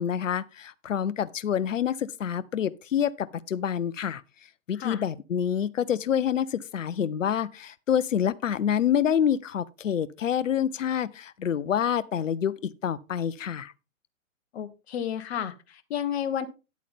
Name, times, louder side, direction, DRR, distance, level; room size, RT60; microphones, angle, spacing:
voice 1, 0.0-4.2 4.7-13.7, left 9 dB, 70° left, 0.9 m, -27 dB
voice 2, 14.5-16.5, left 9 dB, 50° left, 1.5 m, -31 dB
10.5 x 8.4 x 3.6 m
hypercardioid pair, 125°, 40 cm